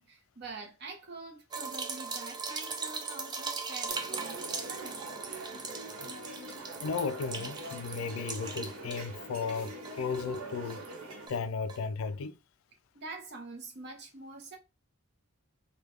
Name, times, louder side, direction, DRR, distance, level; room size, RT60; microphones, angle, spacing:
voice 1, 0.0-5.1 12.9-14.6, right 3 dB, 50° right, 0.8 m, -45 dB
sound 1, 1.5-9.2 9.5-11.0 11.3-11.4 11.7-11.8, right 4 dB, 20° right, 0.3 m, -40 dB
sound 2, 3.9-11.3, right 2 dB, 85° right, 1.0 m, -44 dB
voice 2, 6.8-10.9 11.3-12.3, left 5 dB, 75° left, 0.3 m, -35 dB
3.3 x 2.2 x 3.2 m
head